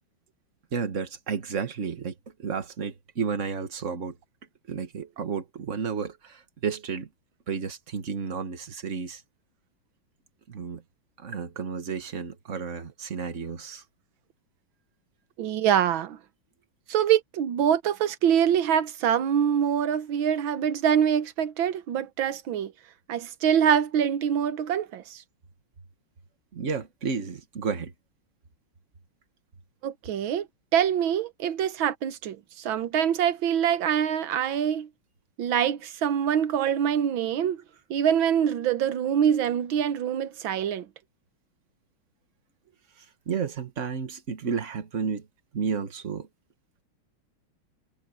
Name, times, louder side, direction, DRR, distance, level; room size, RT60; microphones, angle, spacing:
voice 1, 0.7-2.1 2.4-4.2 4.7-7.1 7.5-9.2 10.5-10.8 11.2-13.8 26.5-27.9 43.3-45.2 45.5-46.3, right 6 dB, 40° right, 1.7 m, -32 dB
voice 2, 15.4-16.2 16.9-22.7 23.1-25.2 29.8-30.5 30.7-34.9 35.4-37.6 37.9-40.9, right 9 dB, 70° right, 1.8 m, -24 dB
omnidirectional pair, 2.3 m